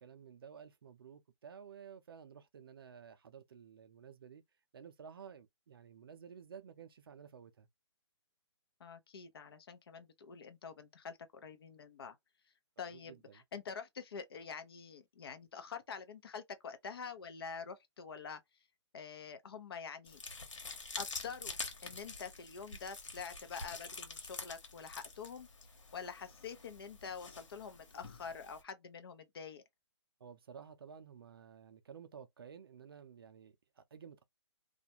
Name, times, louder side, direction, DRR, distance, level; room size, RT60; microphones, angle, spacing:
voice 1, 0.0-4.4 4.7-7.7 12.9-13.4 30.2-34.2, right 7 dB, 50° right, 0.5 m, -53 dB
voice 2, 8.8-12.2 12.8-18.4 18.9-20.2 21.0-25.5 25.9-29.6, left 6 dB, 50° left, 0.7 m, -46 dB
sound 1, 20.1-28.6, left 3 dB, 85° left, 1.2 m, -47 dB
2.4 x 2.1 x 2.7 m
hypercardioid pair, 170°, 16 cm